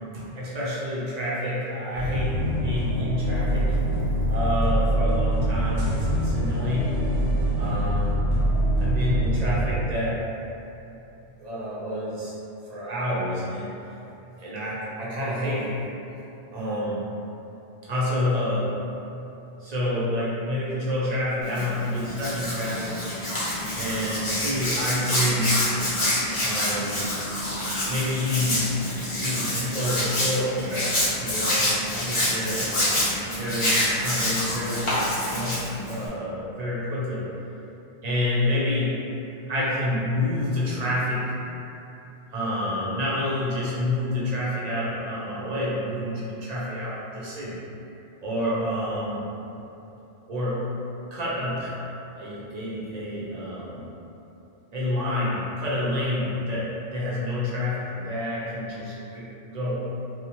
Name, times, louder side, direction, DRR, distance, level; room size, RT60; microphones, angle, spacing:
voice 1, 0.1-3.8 4.3-7.0 7.6-8.3 8.8-10.2 11.4-12.3 12.7-13.7 14.4-15.9 16.5-17.1 17.8-18.7 19.6-23.0 23.7-25.5 26.4-27.1 27.9-28.7 29.2-35.0 35.3-35.6 35.9-37.3 38.0-39.0 39.5-41.3 42.3-47.6 48.2-49.3 50.3-50.6 51.1-51.9 52.2-53.8 54.7-59.8, left 1 dB, 50° right, -8 dB, 0.5 m, -28 dB
sound 1, 1.9-9.6, right 1 dB, 75° right, 1.0 m, -24 dB
Hands, 21.4-36.1, left 1 dB, 35° left, 0.6 m, -27 dB
2.7 x 2.1 x 2.8 m, 2.9 s
omnidirectional pair, 1.1 m